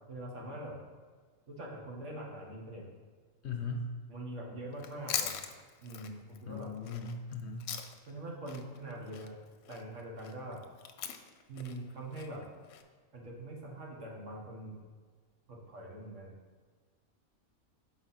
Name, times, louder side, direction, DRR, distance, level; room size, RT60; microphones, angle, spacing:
voice 1, 0.1-0.8 1.5-2.9 4.1-5.4 5.8-6.7 8.1-9.3 9.7-10.6 11.5-12.4 13.1-14.8 15.5-16.3, right 1 dB, 65° right, -2 dB, 1.6 m, -43 dB
voice 2, 3.4-3.8 6.5-7.7, left 4 dB, 60° left, 2 dB, 0.9 m, -38 dB
Chewing mastication, 4.7-8.2 8.5-12.8, left 8 dB, 90° left, 1.0 m, -41 dB
5.7 x 4.2 x 5.8 m, 1.5 s
omnidirectional pair, 1.4 m